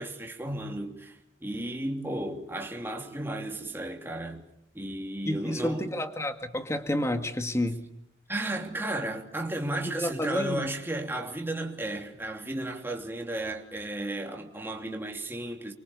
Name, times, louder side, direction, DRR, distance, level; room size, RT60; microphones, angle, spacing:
voice 1, 0.0-4.4 4.7-5.9 8.3-15.7, right 1 dB, 10° right, 3.1 m, -34 dB
voice 2, 5.3-7.8 9.8-10.6, left 1 dB, 15° left, 2.0 m, -30 dB
29.5 x 24.0 x 7.0 m
head